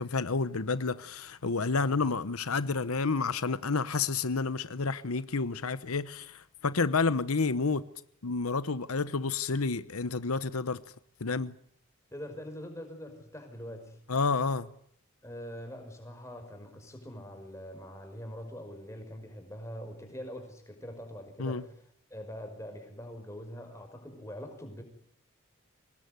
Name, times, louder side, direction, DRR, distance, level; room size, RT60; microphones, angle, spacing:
voice 1, 0.0-7.8 8.2-10.8 11.2-11.5 14.1-14.7 21.4-21.6, left 4 dB, 85° left, 1.0 m, -30 dB
voice 2, 12.1-14.0 15.2-21.7 22.1-24.8, equal, 15° left, 5.6 m, -43 dB
24.5 x 19.5 x 9.4 m
head